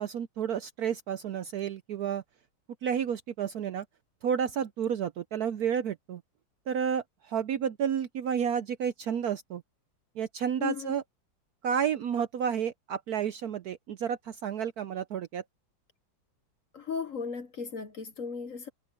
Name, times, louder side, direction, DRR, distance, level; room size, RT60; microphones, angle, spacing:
voice 1, 0.0-2.2 2.8-3.8 4.2-6.2 6.7-9.6 10.2-11.0 11.6-15.4, right 8 dB, 65° right, 1.0 m, -31 dB
voice 2, 10.6-10.9 16.7-18.7, left 6 dB, 50° left, 1.1 m, -36 dB
omnidirectional pair, 2.1 m